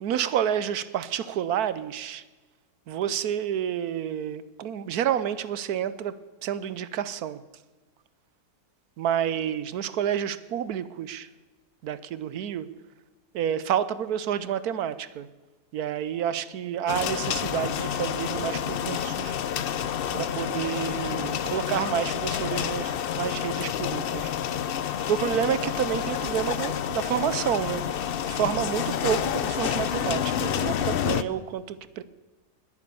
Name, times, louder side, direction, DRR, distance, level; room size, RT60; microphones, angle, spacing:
voice 1, 0.0-2.2 2.9-6.1 6.4-7.4 9.0-11.3 11.8-12.7 13.3-15.3 15.7-19.4 20.1-24.3 25.1-32.0, right 9 dB, 70° right, 15 dB, 1.2 m, -29 dB
sound 1, 16.9-31.2, left 9 dB, 90° left, 0.5 m, -29 dB
20.5 x 9.6 x 6.9 m, 1.2 s
omnidirectional pair, 1.7 m